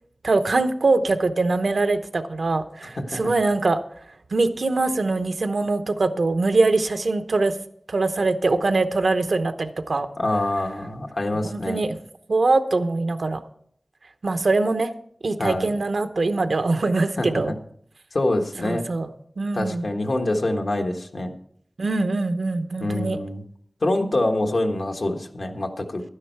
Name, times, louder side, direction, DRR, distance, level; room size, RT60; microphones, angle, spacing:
voice 1, 0.2-3.8 4.3-7.5 7.9-10.1 11.4-12.0 12.3-13.4 14.2-14.9 15.2-17.5 18.6-19.1 19.4-19.9 21.8-23.2, right 3 dB, 85° right, 9 dB, 0.8 m, -22 dB
voice 2, 10.2-11.8 15.4-15.7 17.2-17.3 18.1-18.8 19.5-21.3 22.8-23.4 23.8-26.0, left 1 dB, 80° left, 2 dB, 1.3 m, -25 dB
12.0 x 9.9 x 4.5 m, 0.65 s
wide cardioid pair, 60°, 0 cm